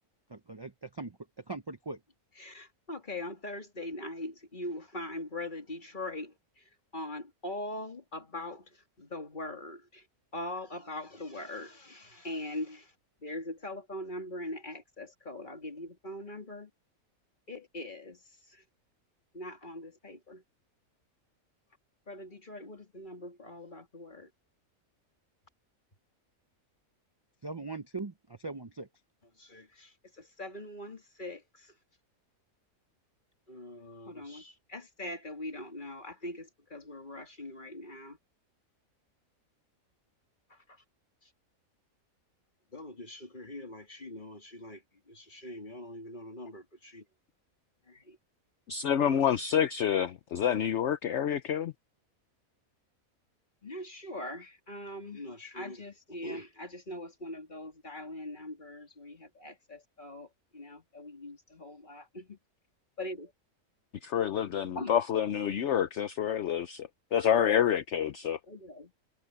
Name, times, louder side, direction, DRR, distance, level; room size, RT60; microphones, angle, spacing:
voice 1, 0.3-1.2 1.5-2.0 27.4-28.9, right 3 dB, 30° right, 0.4 m, -40 dB
voice 2, 2.4-6.6 6.9-8.6 9.0-10.0 10.3-12.9 13.2-16.7 17.5-18.2 18.5-18.6 19.3-20.4 22.1-24.3 29.4-29.9 30.2-31.7 33.5-38.2 40.5-40.6 42.7-44.8 45.1-47.0 47.9-48.2 49.0-49.2 53.6-60.3 60.5-62.4 63.0-63.3 64.7-64.9 68.5-68.9, left 1 dB, 35° left, 2.9 m, -42 dB
voice 3, 48.7-51.7 64.0-68.4, left 9 dB, 60° left, 1.0 m, -28 dB
omnidirectional pair, 1.5 m